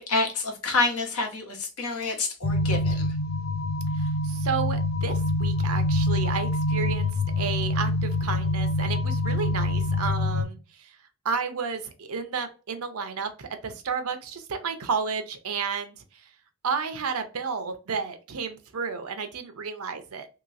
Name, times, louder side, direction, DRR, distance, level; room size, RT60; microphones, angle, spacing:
voice 1, 0.0-3.1, left 3 dB, 90° left, 3 dB, 1.1 m, -28 dB
sound 1, 2.4-10.4, left 1 dB, 45° left, 0.6 m, -25 dB
voice 2, 3.9-11.0 11.2-16.3 16.6-20.3, right 5 dB, 80° right, 8 dB, 0.6 m, -32 dB
3.1 x 2.9 x 2.5 m, 0.33 s
head